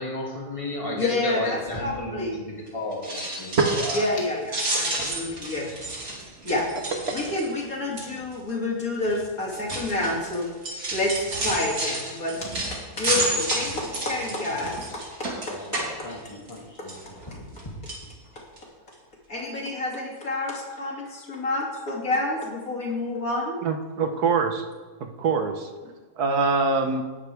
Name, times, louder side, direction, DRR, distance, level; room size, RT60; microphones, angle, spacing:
voice 1, 0.0-4.1 4.9-5.5 15.5-17.0 17.3-17.6, left 1 dB, 20° left, -4 dB, 2.7 m, -34 dB
voice 2, 0.9-2.4 3.9-5.9 6.4-6.7 7.1-10.5 10.9-14.8 15.2-15.3 19.3-23.6, left 2 dB, 65° left, -3 dB, 3.3 m, -28 dB
sound 1, 2.9-3.0 3.2-8.4, right 3 dB, 45° right, 1.7 m, -32 dB
sound 2, 2.9-4.2 4.5-7.6 8.0-8.3 9.0-16.6 16.9-17.6 17.9-18.0 18.6-18.7 18.9-19.0, right 2 dB, 70° right, 3.2 m, -31 dB
voice 3, 23.6-24.6 25.0-25.7 26.2-27.0, right 4 dB, 85° right, 6 dB, 1.7 m, -24 dB
18.5 x 11.0 x 3.5 m, 1.4 s
omnidirectional pair, 1.6 m